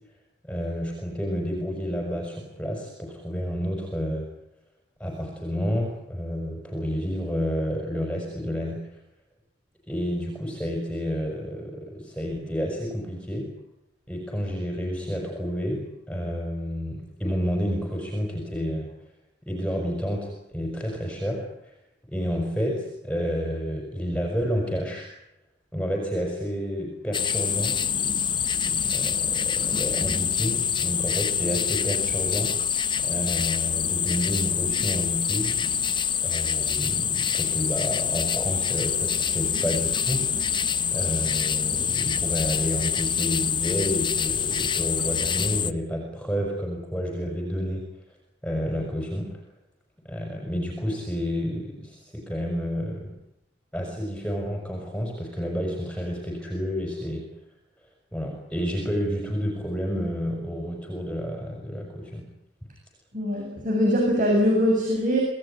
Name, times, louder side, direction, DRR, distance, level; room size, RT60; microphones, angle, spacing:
voice 1, 0.4-4.3 5.0-9.0 9.9-13.5 14.1-18.9 19.4-21.7 22.1-25.1 25.7-27.8 28.9-32.5 33.0-35.5 36.2-40.4 40.9-47.9 48.4-49.4 50.1-53.1 53.7-57.3 58.1-62.3, equal, 5° left, 1 dB, 5.3 m, -30 dB
sound 1, 27.1-45.7, left 8 dB, 25° left, 1.0 m, -26 dB
voice 2, 63.1-65.2, equal, 45° right, 0 dB, 7.8 m, -22 dB
26.5 x 17.5 x 9.8 m, 0.82 s
head